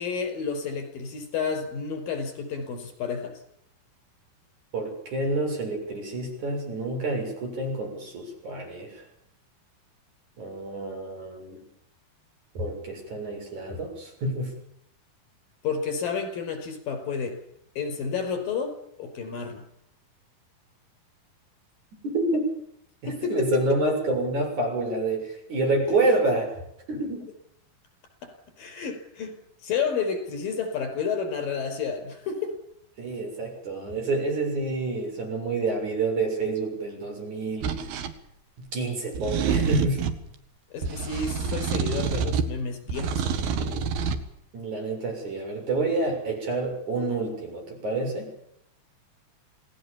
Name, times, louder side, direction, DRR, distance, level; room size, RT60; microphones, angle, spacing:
voice 1, 0.0-3.4 15.6-17.4 17.8-18.7 19.0-19.7 23.1-23.6 25.9-26.0 28.2-28.3 28.6-29.4 29.6-32.6 40.7-43.9, left 5 dB, 70° left, 7 dB, 7.0 m, -30 dB
voice 2, 4.7-9.0 10.4-11.6 12.5-14.5 22.0-22.5 23.0-26.5 26.9-27.3 33.0-37.8 38.7-40.1 44.5-48.3, right 2 dB, 50° right, 2 dB, 8.2 m, -28 dB
sound 1, 37.6-38.1 39.1-40.2 40.8-42.6 42.9-44.2, right 6 dB, 90° right, 3.7 m, -27 dB
28.0 x 19.0 x 7.3 m, 0.71 s
omnidirectional pair, 4.2 m